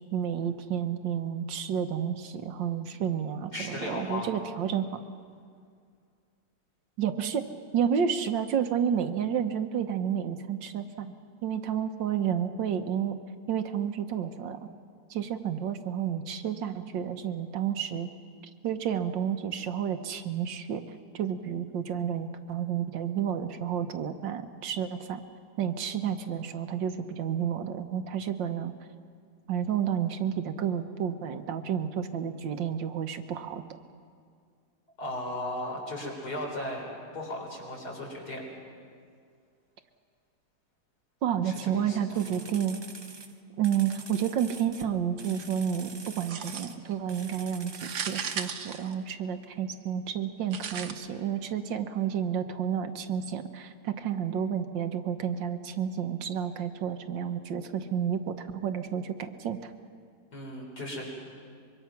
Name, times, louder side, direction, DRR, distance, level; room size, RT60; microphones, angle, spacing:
voice 1, 0.1-5.0 7.0-7.5 7.7-11.1 11.4-13.2 13.5-14.7 15.1-18.1 18.6-20.8 21.1-25.2 25.6-28.7 29.5-33.6 41.2-42.8 43.6-59.7, right 8 dB, 80° right, 7 dB, 1.7 m, -30 dB
voice 2, 3.5-4.3 35.0-36.9 37.1-38.4 41.4-42.2 60.3-61.0, left 1 dB, 60° left, -1 dB, 4.7 m, -36 dB
sound 1, 42.1-44.9 45.2-46.8 47.1-48.5, right 3 dB, 35° right, 0.4 m, -46 dB
sound 2, 46.3-46.9 47.7-49.5 50.5-50.9, right 7 dB, 65° right, 1.5 m, -36 dB
24.5 x 23.0 x 5.9 m, 2.2 s
omnidirectional pair, 2.0 m